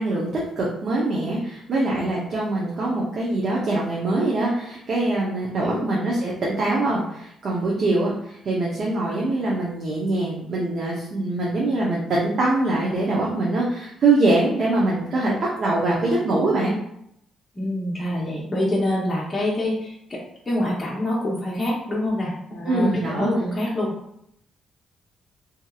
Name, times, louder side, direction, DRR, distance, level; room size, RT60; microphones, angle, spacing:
voice 1, 0.0-16.8 22.6-23.3, right 2 dB, 55° right, -5 dB, 0.7 m, -23 dB
voice 2, 15.8-16.1 17.5-20.2 20.5-23.9, left 1 dB, 20° left, -5 dB, 0.8 m, -26 dB
2.8 x 2.7 x 2.3 m, 0.75 s
cardioid pair, 90°, 0 cm